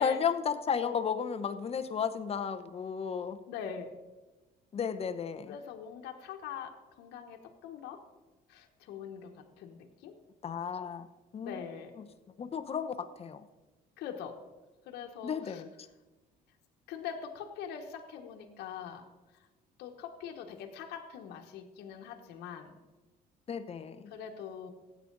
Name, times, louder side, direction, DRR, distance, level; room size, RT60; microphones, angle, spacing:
voice 1, 0.0-3.4 4.7-5.6 10.4-11.1 11.3-11.6 12.0-12.1 12.4-13.5 15.2-15.7 23.5-24.1, left 7 dB, 35° left, 11 dB, 0.8 m, -33 dB
voice 2, 3.5-3.9 5.5-8.0 8.5-9.3 9.6-10.1 11.4-11.9 14.0-14.4 14.9-15.6 16.9-19.0 19.8-22.7 24.1-24.7, left 7 dB, 80° left, 2 dB, 1.2 m, -43 dB
15.5 x 8.5 x 3.9 m, 1.1 s
cardioid pair, 110°, 17 cm